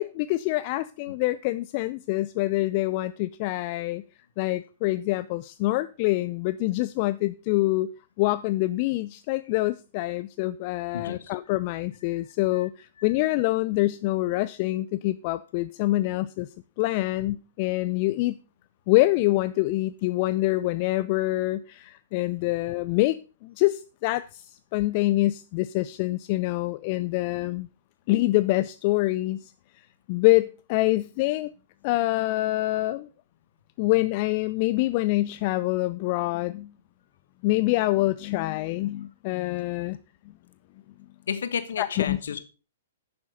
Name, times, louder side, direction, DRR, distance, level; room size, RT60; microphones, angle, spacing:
voice 1, 0.0-4.0 4.4-7.9 8.2-16.5 16.8-18.4 18.9-27.7 28.1-29.5 30.1-31.5 31.8-33.1 33.8-36.7 37.4-40.0 41.8-42.2, left 18 dB, 40° left, 0.5 m, -25 dB
voice 2, 10.9-11.3 12.5-12.7 41.3-42.4, left 7 dB, 65° left, 1.4 m, -32 dB
11.0 x 7.0 x 5.2 m
figure-of-eight pair, 110°, 0 cm